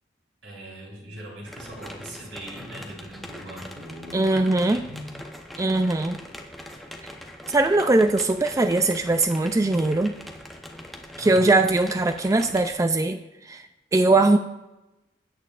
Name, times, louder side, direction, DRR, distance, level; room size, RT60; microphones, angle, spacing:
voice 1, 0.4-5.1 11.2-11.5, right 1 dB, 80° right, -2 dB, 3.4 m, -40 dB
sound 1, 1.5-12.7, equal, ahead, 0.8 m, -42 dB
voice 2, 4.1-4.8 5.6-6.2 7.5-10.1 11.2-13.2 13.4-13.7 13.9-14.4, right 2 dB, 15° right, 8 dB, 0.3 m, -20 dB
16.0 x 8.8 x 2.5 m, 0.98 s
head